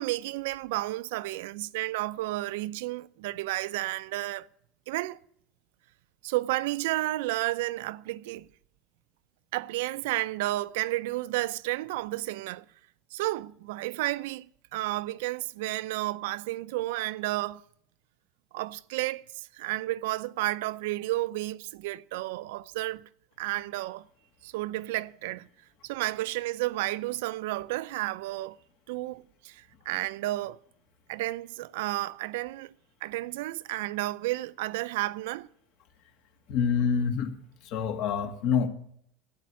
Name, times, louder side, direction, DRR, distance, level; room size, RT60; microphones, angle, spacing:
voice 1, 0.0-4.5 4.9-5.2 6.2-8.5 9.5-12.7 13.1-17.6 18.5-23.1 23.4-24.1 24.4-25.5 25.8-28.6 28.9-30.6 31.1-32.7 33.0-35.5, right 18 dB, 85° right, 0.5 m, -32 dB
voice 2, 36.5-37.3 37.6-38.7, left 7 dB, 55° left, 1.7 m, -26 dB
12.0 x 9.4 x 9.5 m
cardioid pair, 150°, 0 cm